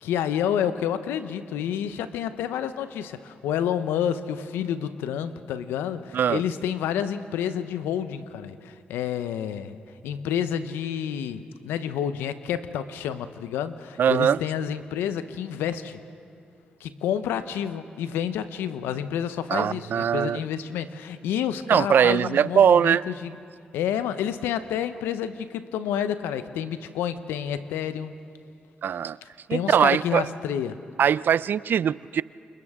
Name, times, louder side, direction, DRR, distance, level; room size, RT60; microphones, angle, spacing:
voice 1, 0.0-9.8 10.0-16.0 16.8-23.3 23.7-28.1 29.5-30.8, left 9 dB, 90° left, 12 dB, 0.8 m, -29 dB
voice 2, 14.0-14.4 19.5-20.4 21.7-23.0 28.8-29.2 29.5-30.3 31.0-32.2, right 8 dB, 65° right, 19 dB, 0.4 m, -21 dB
28.5 x 28.0 x 3.6 m, 2.5 s
supercardioid pair, 50°, 4 cm